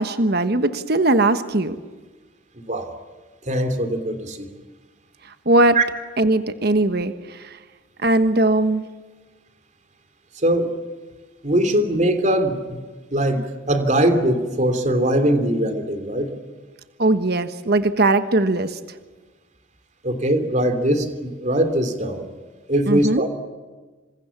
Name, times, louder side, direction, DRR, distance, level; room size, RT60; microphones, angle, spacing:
voice 1, 0.0-1.8 5.2-5.8 6.2-7.6 8.0-8.9 17.0-18.8 22.9-23.3, right 2 dB, 55° right, 10 dB, 1.3 m, -19 dB
voice 2, 2.6-2.9 3.4-4.5 5.7-5.8 10.4-10.7 11.4-12.8 13.1-16.3 20.0-22.2 22.7-23.3, right 1 dB, 40° right, 8 dB, 3.2 m, -21 dB
27.5 x 27.0 x 7.3 m, 1.3 s
head